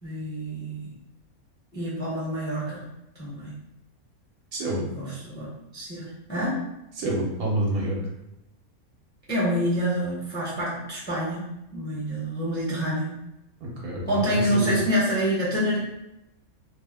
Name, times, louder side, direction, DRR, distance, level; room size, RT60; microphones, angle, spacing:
voice 1, 0.0-0.9 1.7-2.8 3.2-3.5 4.8-5.5 5.7-6.6 9.3-11.4 11.7-13.1 14.1-15.8, equal, 10° left, -7 dB, 0.6 m, -27 dB
voice 2, 4.5-4.9 7.0-8.1 13.6-14.7, right 1 dB, 85° right, -3 dB, 1.3 m, -28 dB
2.9 x 2.0 x 3.5 m, 0.90 s
omnidirectional pair, 1.5 m